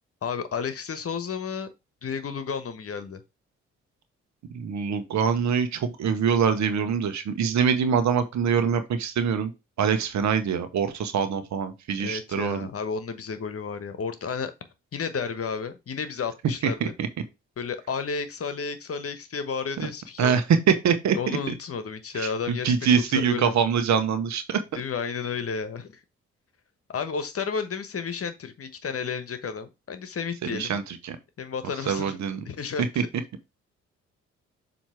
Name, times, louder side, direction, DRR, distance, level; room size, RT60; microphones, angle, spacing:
voice 1, 0.2-1.7 2.0-3.2 12.0-14.5 14.9-16.9 17.6-20.3 21.1-23.6 24.7-26.0 26.9-30.8 31.4-32.2 32.4-33.1, left 5 dB, 45° left, 10 dB, 1.2 m, -32 dB
voice 2, 4.5-9.5 9.8-12.7 16.6-16.9 19.8-19.9 20.2-21.2 21.5-21.6 22.1-24.6 30.4-31.2 31.9-32.4, right 7 dB, 60° right, 9 dB, 1.2 m, -24 dB
7.2 x 3.1 x 4.8 m, 0.24 s
hypercardioid pair, 45°, 32 cm